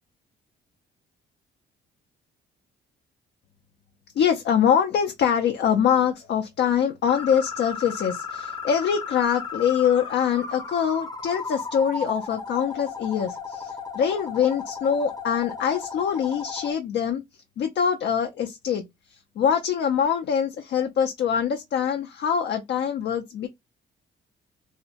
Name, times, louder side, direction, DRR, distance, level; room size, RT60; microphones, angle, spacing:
voice 1, 4.2-23.5, left 8 dB, 60° left, 0.5 m, -24 dB
sound 1, 7.1-16.7, left 5 dB, 20° left, 0.6 m, -35 dB
2.8 x 2.0 x 2.7 m
cardioid pair, 90°, 20 cm